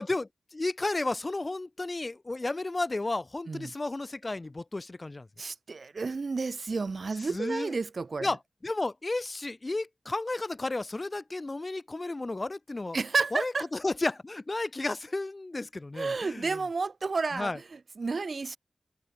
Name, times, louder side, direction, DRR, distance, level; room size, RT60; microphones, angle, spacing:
voice 1, 0.0-5.3 7.3-7.7 8.2-8.4 8.6-13.0 13.3-16.5 17.3-17.6, left 2 dB, 40° left, 1.1 m, -33 dB
voice 2, 5.4-8.3 12.9-13.7 15.9-18.6, right 4 dB, 65° right, 0.6 m, -31 dB
cardioid pair, 45°, 0 cm